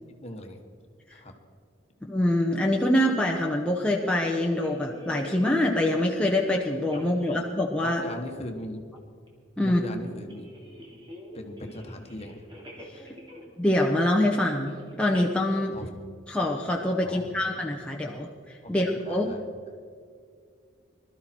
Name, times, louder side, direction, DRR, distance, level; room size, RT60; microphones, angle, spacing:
voice 1, 0.2-0.6 1.1-1.3 7.8-8.8 9.6-10.5 11.3-12.5 15.7-15.9 17.0-17.4 18.6-19.4, left 1 dB, 35° left, 4 dB, 1.5 m, -39 dB
voice 2, 2.0-8.0 9.6-9.8 12.9-13.0 13.6-15.8 16.3-19.3, left 1 dB, 5° left, -2 dB, 0.9 m, -25 dB
sound 1, 4.6-6.3 6.7-7.3 8.3-8.4 8.9-9.0 9.3-9.4 10.0-13.6 13.9-14.3 14.5-15.3, equal, 25° right, 2.7 m, -47 dB
21.5 x 13.0 x 4.5 m, 2.1 s
head